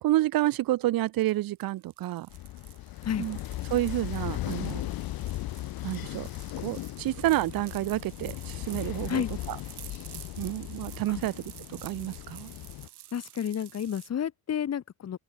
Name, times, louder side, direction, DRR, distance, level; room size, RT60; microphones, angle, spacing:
voice 1, 0.0-2.3 3.2-3.4 3.7-4.8 5.8-6.3 6.6-9.6 10.4-11.3 11.7-12.5, right 16 dB, 60° right, 0.6 m, -29 dB
sound 1, 1.3-14.1, right 13 dB, 85° right, 3.9 m, -50 dB
sound 2, 2.3-12.9, left 16 dB, 65° left, 0.6 m, -37 dB
voice 2, 13.1-15.2, left 9 dB, 40° left, 1.1 m, -31 dB
open air
cardioid pair, 115°, 39 cm